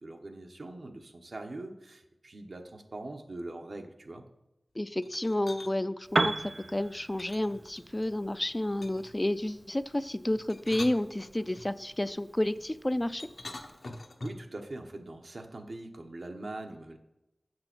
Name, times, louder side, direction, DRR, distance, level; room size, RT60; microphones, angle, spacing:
voice 1, 0.0-4.2 14.2-17.0, right 2 dB, 75° right, 4 dB, 1.0 m, -42 dB
voice 2, 4.8-13.3, left 1 dB, 25° left, 13 dB, 0.3 m, -31 dB
sound 1, 5.0-5.7 7.2-8.1 8.8-9.2 10.3-11.7 13.2-14.5, left 2 dB, 70° left, 0.9 m, -44 dB
Piano, 6.0-13.8, right 2 dB, 55° right, 0.3 m, -38 dB
7.7 x 6.7 x 6.0 m, 0.95 s
wide cardioid pair, 65°, 0 cm